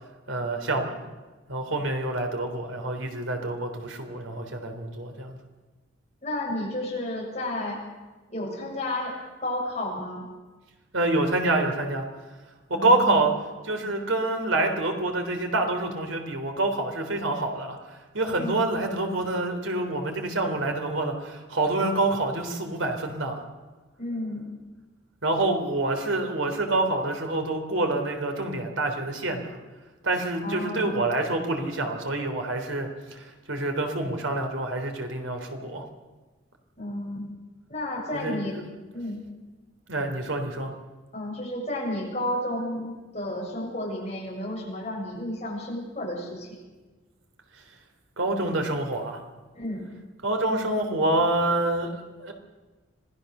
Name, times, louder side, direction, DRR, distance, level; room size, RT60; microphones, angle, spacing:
voice 1, 0.3-1.0 1.5-5.4 10.9-12.1 12.7-13.3 13.6-17.8 18.1-23.4 25.2-29.6 30.0-35.8 38.1-38.6 39.9-40.7 48.2-49.2 50.2-52.3, right 2 dB, 85° right, 5 dB, 3.6 m, -27 dB
voice 2, 6.2-7.8 8.3-9.2 9.4-10.3 12.7-13.2 18.3-18.5 24.0-24.5 30.4-31.0 36.8-37.2 37.7-38.6 38.9-39.2 41.1-46.5 49.5-49.8, left 1 dB, 35° left, -3 dB, 7.4 m, -32 dB
26.0 x 19.0 x 6.8 m, 1.2 s
head